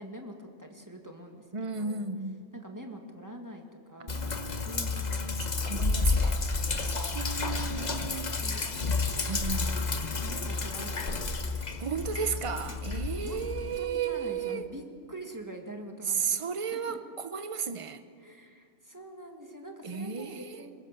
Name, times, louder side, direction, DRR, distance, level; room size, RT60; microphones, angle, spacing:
voice 1, 0.0-2.0 2.5-5.3 5.8-5.9 6.1-6.5 7.5-12.1 12.5-12.7 13.2-13.4 13.8-17.0 18.2-20.7, right 1 dB, 15° right, 2 dB, 1.9 m, -45 dB
voice 2, 1.5-2.5 4.0-4.8 5.7-6.4 6.9-8.3 9.3-9.8 11.8-14.7 16.1-18.0 19.8-20.6, right 6 dB, 30° right, 10 dB, 0.8 m, -34 dB
Sink (filling or washing), 4.1-13.8, left 3 dB, 35° left, 1.1 m, -31 dB
22.0 x 21.0 x 6.8 m, 2.2 s
omnidirectional pair, 1.4 m